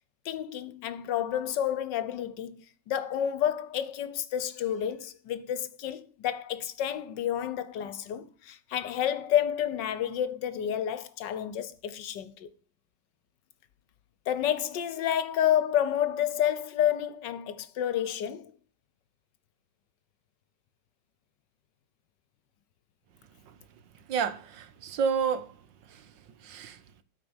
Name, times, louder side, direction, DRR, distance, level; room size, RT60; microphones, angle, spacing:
voice 1, 0.2-12.5 14.3-18.5, left 10 dB, 75° left, 1.5 m, -30 dB
voice 2, 24.1-25.5 25.9-26.1 26.4-26.8, right 6 dB, 80° right, 1.7 m, -30 dB
12.5 x 5.1 x 7.1 m
omnidirectional pair, 2.0 m